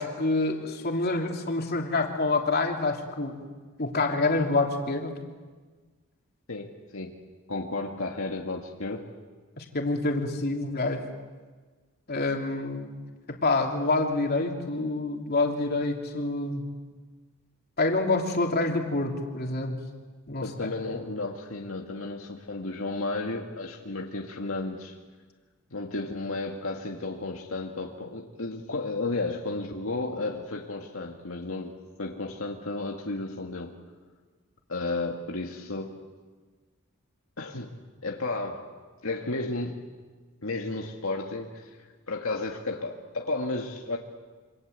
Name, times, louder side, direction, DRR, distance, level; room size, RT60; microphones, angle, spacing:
voice 1, 0.0-3.4 3.8-5.1 9.6-11.0 12.1-12.9 13.4-16.6 17.8-19.8 20.3-20.7, left 2 dB, 50° left, 1 dB, 3.3 m, -27 dB
voice 2, 6.5-7.1 7.5-9.1 20.4-25.0 25.7-31.7 32.0-33.7 34.7-35.9 37.4-37.7 38.0-38.7 39.0-39.8 40.4-41.7 42.1-44.0, left 2 dB, 75° left, 1 dB, 2.0 m, -33 dB
27.5 x 26.0 x 8.3 m, 1.4 s
head